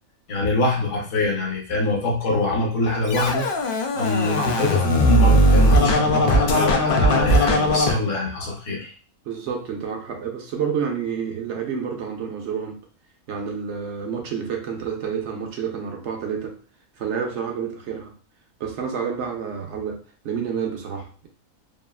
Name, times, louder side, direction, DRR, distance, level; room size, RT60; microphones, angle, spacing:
voice 1, 0.3-3.5 3.9-8.9, left 2 dB, 65° left, -1 dB, 1.1 m, -24 dB
Scratching (performance technique), 3.1-7.9, equal, 85° left, 0.4 m, -18 dB
voice 2, 9.3-12.8 13.3-16.6 17.0-18.1 18.6-21.3, right 7 dB, 65° right, 2 dB, 0.8 m, -29 dB
2.8 x 2.4 x 2.3 m, 0.38 s
omnidirectional pair, 1.5 m